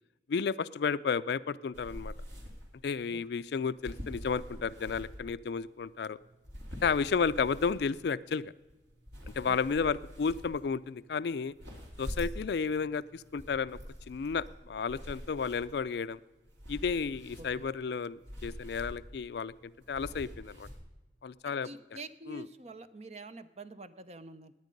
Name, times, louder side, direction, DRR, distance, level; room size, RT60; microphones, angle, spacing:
voice 1, 0.3-2.1 2.8-6.2 6.8-8.5 9.4-11.5 12.0-13.8 14.1-16.2 16.7-20.7 21.2-21.7 22.3-22.4, left 5 dB, 60° left, 17 dB, 0.4 m, -32 dB
sound 1, 1.7-20.8, equal, 80° right, 3.1 m, -46 dB
voice 2, 9.5-9.9 17.4-17.6 21.4-24.5, right 2 dB, 35° right, 12 dB, 0.6 m, -47 dB
17.5 x 9.7 x 5.2 m, 1.1 s
head